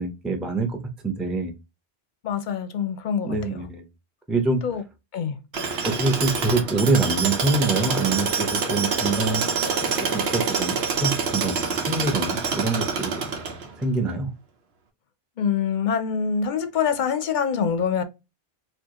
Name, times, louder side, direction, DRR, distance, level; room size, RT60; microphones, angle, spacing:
voice 1, 0.0-1.5 3.2-3.8 4.3-4.6 5.8-9.4 9.8-11.6 11.9-13.3 13.8-14.3, right 3 dB, ahead, 0.5 m, -25 dB
voice 2, 2.2-3.4 4.6-4.8 5.1-5.4 15.4-18.0, left 7 dB, 55° left, 0.7 m, -25 dB
Tools, 5.5-13.8, right 5 dB, 75° right, 1.1 m, -26 dB
4.5 x 2.5 x 2.9 m
omnidirectional pair, 1.1 m